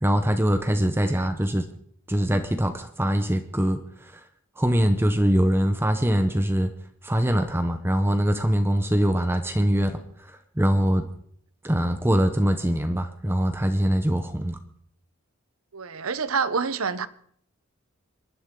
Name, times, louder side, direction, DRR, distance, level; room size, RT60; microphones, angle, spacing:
voice 1, 0.0-1.7 2.1-4.2 4.6-6.7 7.0-10.0 10.3-11.1 11.6-14.6, equal, 10° right, 0.8 m, -23 dB
voice 2, 15.7-17.1, right 5 dB, 90° right, 0.9 m, -27 dB
26.5 x 11.5 x 3.8 m
head